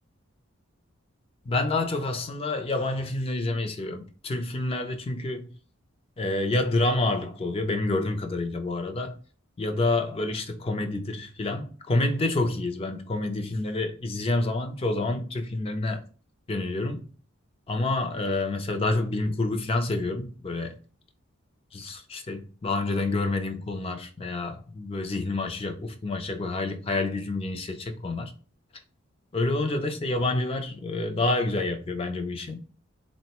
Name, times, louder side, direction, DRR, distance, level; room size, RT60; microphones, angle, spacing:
voice 1, 1.5-5.5 6.2-9.2 9.6-16.0 16.5-17.0 17.7-20.8 21.7-28.3 29.3-32.6, left 2 dB, 25° left, 0.3 m, -28 dB
3.6 x 2.1 x 2.8 m
head